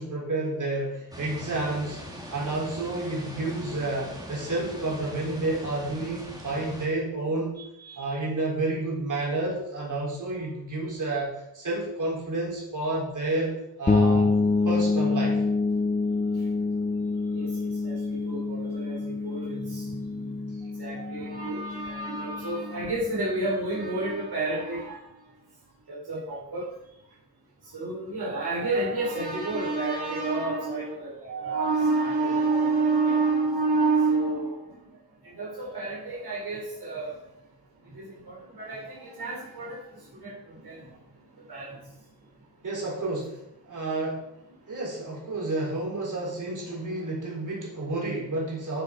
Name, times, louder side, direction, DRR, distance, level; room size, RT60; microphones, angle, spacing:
voice 1, 0.0-2.0 2.3-7.6 8.0-14.4 14.6-15.4 42.6-44.3 44.7-48.8, right 2 dB, 50° right, -4 dB, 3.7 m, -30 dB
sound 1, 1.1-6.9, equal, 10° right, 2.3 m, -41 dB
sound 2, 13.9-23.5, left 3 dB, 20° left, 0.6 m, -27 dB
voice 2, 17.3-25.1 25.9-26.7 27.6-35.0 35.2-37.1 37.8-40.9 41.5-41.8 46.9-47.0, right 3 dB, 65° right, -5 dB, 3.2 m, -29 dB
8.9 x 8.6 x 4.9 m, 0.82 s
wide cardioid pair, 155°, 41 cm